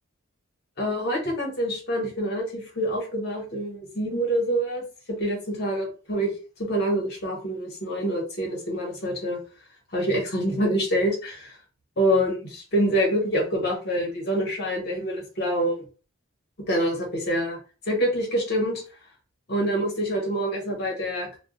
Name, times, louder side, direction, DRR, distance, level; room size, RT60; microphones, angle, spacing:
voice 1, 0.8-6.3 6.6-9.4 9.9-11.6 12.0-15.8 16.7-17.6 17.9-18.8 19.5-21.4, equal, 50° left, 0 dB, 1.1 m, -26 dB
2.3 x 2.3 x 3.7 m, 0.37 s
head